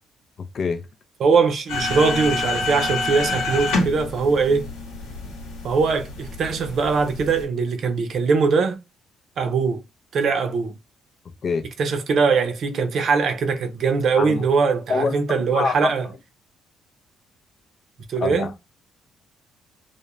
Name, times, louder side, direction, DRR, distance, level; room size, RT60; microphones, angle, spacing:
voice 1, 0.4-0.9 11.4-11.7 14.2-14.4 14.9-15.2 15.5-15.9 18.2-18.6, left 5 dB, 50° left, 0.4 m, -25 dB
voice 2, 1.2-4.7 5.6-8.8 9.4-9.8 10.1-10.8 11.8-16.1 18.1-18.5, right 5 dB, 65° right, 0.6 m, -21 dB
sound 1, 1.7-7.4, left 2 dB, 90° left, 0.9 m, -28 dB
2.3 x 2.2 x 2.9 m
supercardioid pair, 70°, 0 cm